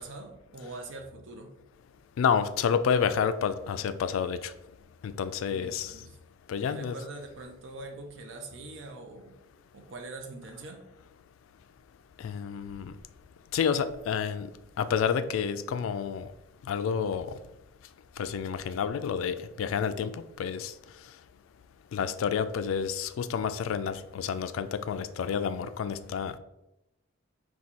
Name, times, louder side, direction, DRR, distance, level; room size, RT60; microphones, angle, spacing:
voice 1, 0.0-1.5 5.5-6.2 6.6-9.3 9.7-10.8, right 2 dB, 65° right, 3 dB, 0.6 m, -43 dB
voice 2, 2.2-4.5 5.0-5.9 6.5-7.0 12.2-12.9 13.5-14.5 14.8-16.3 16.7-17.3 18.2-20.7 21.9-26.4, left 7 dB, 85° left, 12 dB, 0.3 m, -29 dB
4.5 x 2.3 x 4.1 m, 0.90 s
head